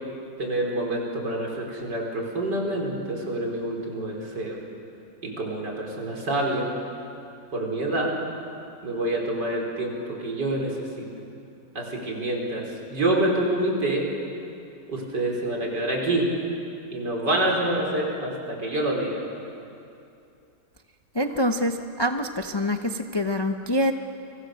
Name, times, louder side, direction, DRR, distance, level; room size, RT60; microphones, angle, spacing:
voice 1, 0.4-4.6 5.4-6.7 7.5-8.1 8.8-11.1 11.7-12.7 12.9-14.1 14.9-16.2 16.9-19.2, right 1 dB, 75° right, -1 dB, 4.8 m, -27 dB
voice 2, 21.1-23.9, left 1 dB, 30° left, 5 dB, 0.5 m, -25 dB
29.5 x 24.0 x 6.5 m, 2.6 s
omnidirectional pair, 1.9 m